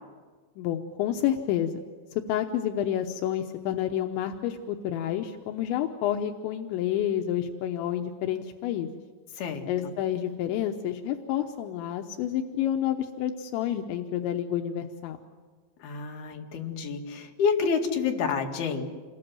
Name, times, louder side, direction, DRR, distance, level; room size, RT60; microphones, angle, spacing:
voice 1, 0.6-1.8 2.3-9.0 9.7-15.2, left 10 dB, 85° left, 5 dB, 3.3 m, -29 dB
voice 2, 9.4-9.9 15.8-18.9, left 5 dB, 65° left, 2 dB, 3.9 m, -29 dB
27.5 x 22.0 x 7.7 m, 1.5 s
omnidirectional pair, 5.2 m